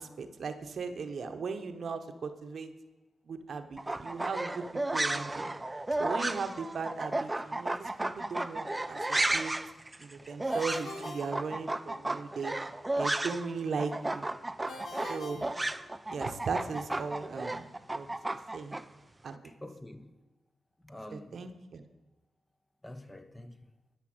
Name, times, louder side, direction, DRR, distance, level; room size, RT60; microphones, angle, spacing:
voice 1, 0.0-2.7 3.3-4.7 4.9-5.5 6.0-9.5 10.0-12.5 13.0-14.3 15.1-15.5 16.1-18.1 18.5-18.8 19.2-19.5 21.1-21.8, right 5 dB, 65° right, 1.0 m, -37 dB
sound 1, 3.8-13.5 13.8-18.8, right 2 dB, 20° right, 0.5 m, -33 dB
Ringtone, 10.5-12.2 14.7-16.4, left 2 dB, 70° left, 2.0 m, -45 dB
voice 2, 19.4-20.1 20.8-21.5 22.8-23.7, left 1 dB, 15° left, 1.0 m, -47 dB
12.0 x 5.8 x 7.8 m
cardioid pair, 70°, 0 cm